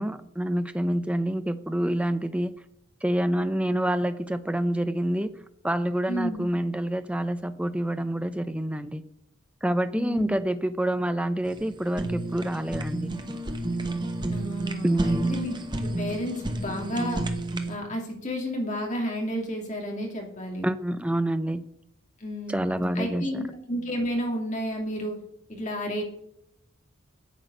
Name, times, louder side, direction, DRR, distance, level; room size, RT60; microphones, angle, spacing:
voice 1, 0.0-2.5 3.0-5.3 5.6-9.0 9.6-13.1 14.8-15.3 20.6-21.6 22.5-23.4, right 1 dB, 5° right, 10 dB, 0.5 m, -27 dB
voice 2, 6.1-6.5 9.9-10.4 14.3-15.5 15.8-17.2 17.7-20.7 22.2-25.2 25.5-26.0, equal, 35° left, 1 dB, 2.7 m, -31 dB
Fire, 11.5-17.8, right 1 dB, 20° right, 1.1 m, -31 dB
9.0 x 8.2 x 6.4 m, 0.75 s
head